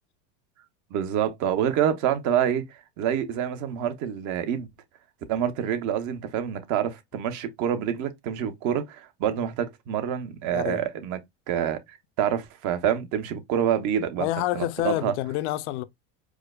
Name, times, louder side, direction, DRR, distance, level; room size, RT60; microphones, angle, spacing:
voice 1, 0.9-4.7 5.3-11.2 11.5-15.2, right 9 dB, 55° right, 0.8 m, -27 dB
voice 2, 10.5-10.8 14.2-15.8, left 15 dB, 75° left, 0.5 m, -28 dB
4.7 x 2.0 x 2.2 m
supercardioid pair, 125°, 34 cm